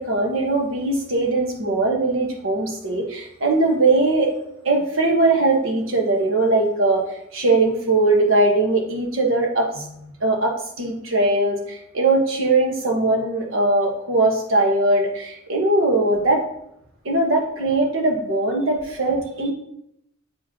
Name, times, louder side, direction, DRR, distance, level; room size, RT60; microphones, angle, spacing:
voice 1, 0.0-4.3 4.6-16.4 17.0-19.5, right 2 dB, 75° right, 2 dB, 1.3 m, -20 dB
7.9 x 5.2 x 2.9 m, 0.76 s
head